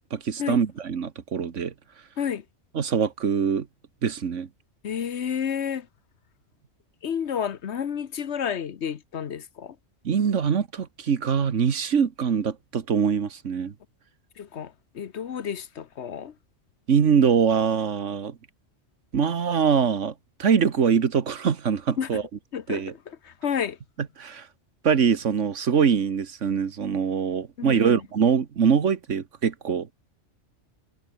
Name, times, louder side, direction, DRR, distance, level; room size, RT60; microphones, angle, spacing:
voice 1, 0.1-1.7 2.7-3.7 4.0-4.5 10.0-13.7 16.9-18.4 19.1-20.1 20.4-22.2 22.7-22.9 24.2-24.5 24.8-29.9, right 7 dB, 85° right, 1.7 m, -23 dB
voice 2, 4.8-5.9 7.0-9.7 14.4-16.3 22.0-22.1 22.5-22.8 23.3-23.8 27.6-28.0, left 8 dB, 70° left, 1.2 m, -30 dB
omnidirectional pair, 1.2 m